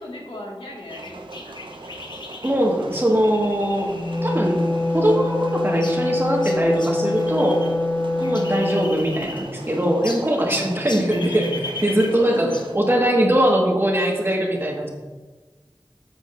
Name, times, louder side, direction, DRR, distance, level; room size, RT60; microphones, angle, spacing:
voice 1, 0.0-1.6 8.1-8.3 10.3-10.9 12.2-12.6, left 1 dB, 85° left, -3 dB, 2.0 m, -37 dB
sound 1, 0.9-7.7 8.0-9.7 10.0-12.8, left 2 dB, 55° left, 0.9 m, -38 dB
sound 2, 0.9-12.8, right 2 dB, 65° right, 0.9 m, -40 dB
voice 2, 2.4-3.9 4.2-4.6 4.9-7.6 8.2-11.5 11.8-14.9, right 1 dB, 25° right, -1 dB, 1.7 m, -21 dB
Wind instrument woodwind instrument, 3.9-9.0, left 2 dB, 15° left, 0.5 m, -24 dB
10.0 x 7.8 x 2.6 m, 1.3 s
wide cardioid pair, 55°, 9 cm